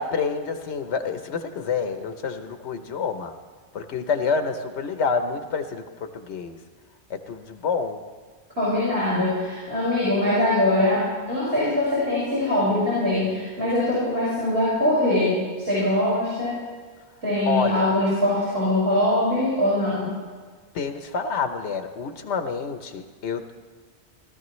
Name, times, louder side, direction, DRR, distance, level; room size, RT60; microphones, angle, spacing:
voice 1, 0.0-3.3 3.7-5.8 6.1-6.6 7.1-8.0 11.6-11.7 17.5-17.8 20.7-23.5, left 5 dB, 85° left, 8 dB, 1.1 m, -28 dB
voice 2, 8.6-15.3 15.6-16.5 17.2-20.1, left 1 dB, 60° right, -10 dB, 5.3 m, -22 dB
17.5 x 13.0 x 3.1 m, 1.5 s
omnidirectional pair, 1.1 m